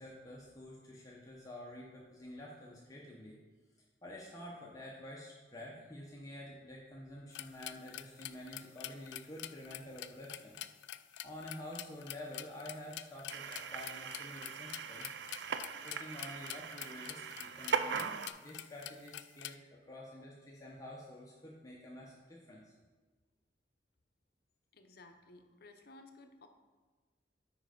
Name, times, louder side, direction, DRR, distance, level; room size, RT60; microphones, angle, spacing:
voice 1, 0.0-3.4 4.0-10.6 11.2-15.1 15.8-18.1 18.4-22.7, left 1 dB, 20° left, -4 dB, 0.9 m, -49 dB
sound 1, 7.3-19.5, left 13 dB, 75° left, 0.3 m, -46 dB
sound 2, 13.3-18.3, right 6 dB, 65° right, 0.4 m, -39 dB
voice 2, 24.7-26.5, left 2 dB, 60° left, 6 dB, 0.7 m, -56 dB
7.1 x 5.2 x 5.1 m, 1.3 s
head